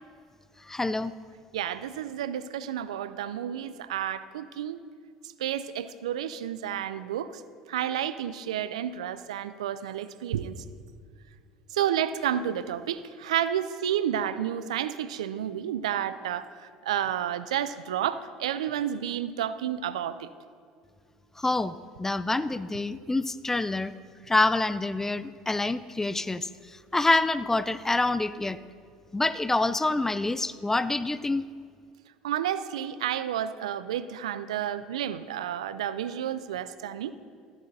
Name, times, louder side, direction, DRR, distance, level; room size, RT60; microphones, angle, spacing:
voice 1, 0.7-1.1 21.4-23.9 24.3-26.5 26.9-28.6 29.1-31.4, left 2 dB, 10° left, 15 dB, 0.4 m, -26 dB
voice 2, 1.5-4.8 5.4-7.4 7.7-10.6 11.7-20.3 32.2-37.1, right 10 dB, 80° right, 14 dB, 0.4 m, -31 dB
13.5 x 9.6 x 2.7 m, 2.1 s
hypercardioid pair, 70°, 3 cm